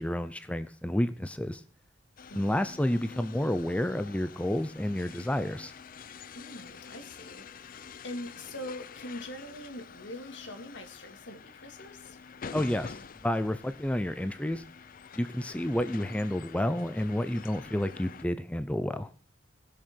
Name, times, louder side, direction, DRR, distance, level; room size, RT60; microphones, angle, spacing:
voice 1, 0.0-1.6 2.3-5.7 12.5-13.0 13.2-14.6 15.1-19.1, left 1 dB, 5° left, 11 dB, 0.6 m, -30 dB
sound 1, 2.2-18.3, left 6 dB, 50° left, 0.6 m, -47 dB
voice 2, 2.3-2.6 6.3-12.2, left 1 dB, 75° left, 6 dB, 2.4 m, -43 dB
19.5 x 6.6 x 6.2 m, 0.42 s
head